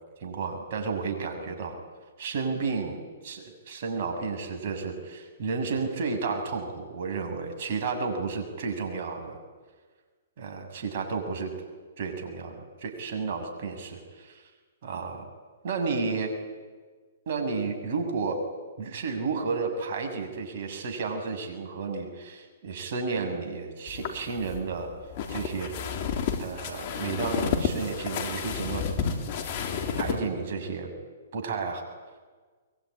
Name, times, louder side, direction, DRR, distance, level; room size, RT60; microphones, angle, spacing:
voice 1, 0.2-1.8 2.2-9.4 10.4-11.5 12.0-14.4 14.8-15.3 15.6-16.4 17.3-18.4 18.8-24.9 25.3-25.7 26.4-28.8 30.0-30.9 31.3-31.8, right 4 dB, 55° right, 4 dB, 7.2 m, -32 dB
sound 1, 23.9-30.2, left 6 dB, 45° left, 3.8 m, -31 dB
24.0 x 23.0 x 10.0 m, 1.4 s
hypercardioid pair, 130°, 0 cm